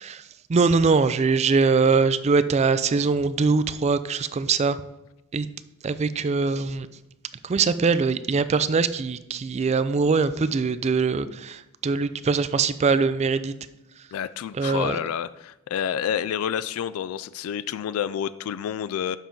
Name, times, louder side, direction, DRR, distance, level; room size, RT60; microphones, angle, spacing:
voice 1, 0.5-4.8 5.3-5.5 5.8-6.9 7.4-13.5 14.6-15.0, right 4 dB, 30° right, 14 dB, 0.3 m, -22 dB
voice 2, 14.1-19.2, left 9 dB, 80° left, 15 dB, 0.3 m, -29 dB
7.2 x 5.7 x 3.8 m, 0.93 s
head